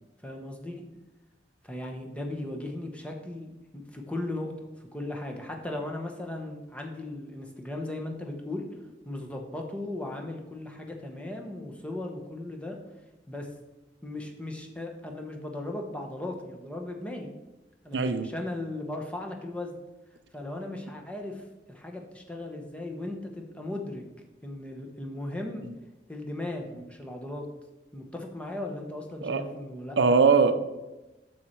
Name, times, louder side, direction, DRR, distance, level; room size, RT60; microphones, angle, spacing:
voice 1, 0.2-0.8 1.6-4.5 4.9-8.7 9.0-12.8 13.3-13.5 14.0-17.3 17.8-19.7 20.3-24.0 24.4-25.6 26.1-27.5 27.9-30.2, left 1 dB, 5° left, 2 dB, 0.9 m, -37 dB
voice 2, 17.9-18.3 29.2-29.4 30.0-30.6, right 5 dB, 70° right, 10 dB, 0.5 m, -21 dB
7.0 x 6.3 x 4.5 m, 1.1 s
head